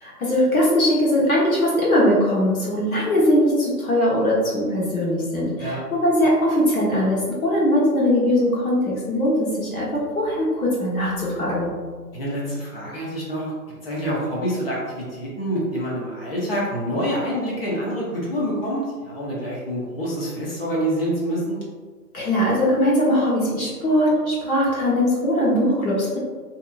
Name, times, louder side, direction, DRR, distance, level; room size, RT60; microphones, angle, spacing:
voice 1, 0.0-11.7 22.1-26.2, left 1 dB, 60° left, -6 dB, 1.2 m, -20 dB
voice 2, 12.1-13.5 13.8-21.6, equal, 35° left, -5 dB, 0.7 m, -26 dB
2.8 x 2.4 x 2.3 m, 1.5 s
hypercardioid pair, 155°, 49 cm